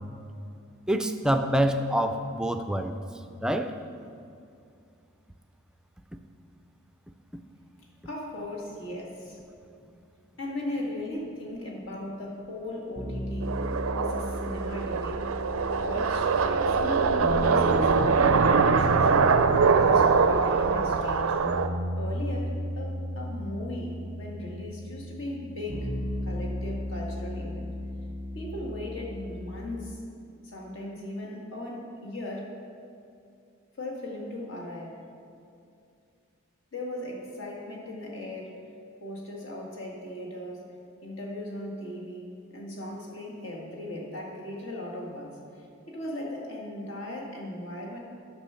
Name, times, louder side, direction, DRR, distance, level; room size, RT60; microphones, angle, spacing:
voice 1, 0.9-2.9 3.4-3.7, right 1 dB, 5° right, 7 dB, 0.4 m, -26 dB
voice 2, 8.1-9.4 10.4-15.3 15.8-21.4 22.0-25.9 26.2-27.7 28.3-30.0 30.4-32.6 33.7-35.0 36.7-38.6 39.0-40.7 41.0-48.0, left 1 dB, 65° left, -1 dB, 1.8 m, -38 dB
sound 1, 13.0-30.0, equal, 15° left, 1.2 m, -35 dB
sound 2, 13.4-21.7, right 5 dB, 90° right, 0.5 m, -23 dB
10.5 x 6.3 x 5.6 m, 2.5 s
head